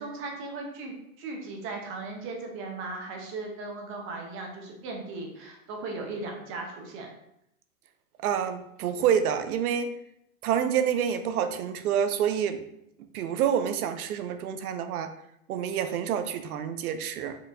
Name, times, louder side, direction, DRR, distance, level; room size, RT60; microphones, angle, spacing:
voice 1, 0.0-7.1, right 3 dB, 30° right, 1 dB, 0.7 m, -37 dB
voice 2, 8.2-9.9 10.4-12.6 13.1-15.1 15.5-17.4, right 8 dB, 85° right, 9 dB, 0.5 m, -27 dB
4.3 x 2.6 x 2.4 m, 0.79 s
hypercardioid pair, 130°, 43 cm